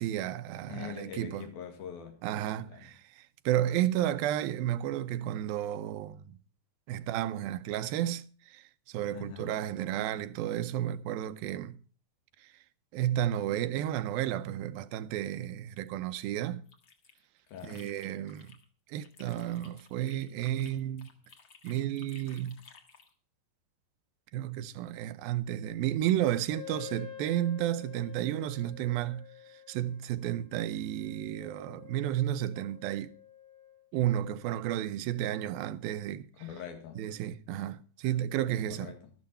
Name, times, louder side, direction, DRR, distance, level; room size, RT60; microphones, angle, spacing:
voice 1, 0.0-1.5 2.2-6.4 6.9-11.8 12.9-16.6 17.7-18.6 18.9-21.1 21.6-22.6 24.3-29.3 29.7-33.1 33.9-36.3 37.0-38.9, right 12 dB, 85° right, 2.5 m, -32 dB
voice 2, 0.7-2.2 2.6-2.9 9.1-9.6 17.5-17.9 36.3-37.0 38.4-39.1, left 8 dB, 85° left, 3.8 m, -44 dB
sound 1, 16.5-18.6 18.9-23.1, left 5 dB, 45° left, 1.7 m, -57 dB
Wind instrument woodwind instrument, 26.5-33.8, left 10 dB, 60° left, 4.1 m, -49 dB
12.5 x 12.5 x 4.3 m
omnidirectional pair, 4.1 m